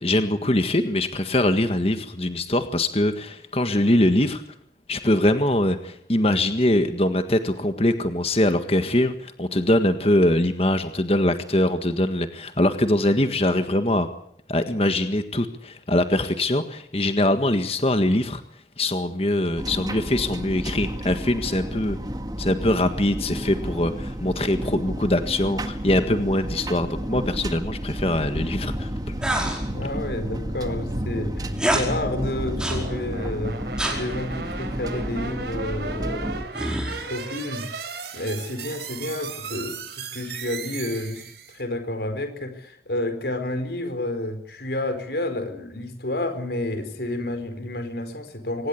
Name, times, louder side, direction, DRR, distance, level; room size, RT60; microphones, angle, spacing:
voice 1, 0.0-4.4 4.9-14.1 14.5-18.4 18.8-22.0 22.4-28.9, left 1 dB, 35° left, 8 dB, 1.7 m, -22 dB
sound 1, 19.6-36.4, equal, 20° right, 1.8 m, -32 dB
sound 2, 27.2-41.6, right 2 dB, 70° right, 3.8 m, -35 dB
sound 3, 29.2-29.6 31.5-31.9 32.6-32.9 33.8-34.0 36.5-37.2, right 1 dB, 5° right, 4.9 m, -26 dB
voice 2, 29.7-33.6 33.9-36.5 37.1-48.7, left 1 dB, 65° left, 8 dB, 4.6 m, -30 dB
24.5 x 20.0 x 8.6 m, 0.70 s
head